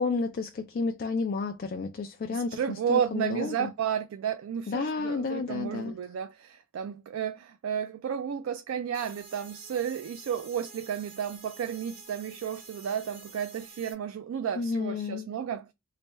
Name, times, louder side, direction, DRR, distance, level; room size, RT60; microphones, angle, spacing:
voice 1, 0.0-3.7 4.7-5.9 14.6-15.3, left 4 dB, 45° left, 0.3 m, -31 dB
voice 2, 2.3-15.7, right 8 dB, 80° right, 0.3 m, -32 dB
ind white noise robotic echo, 8.9-13.9, right 4 dB, 30° right, 0.9 m, -49 dB
3.2 x 2.2 x 4.1 m
head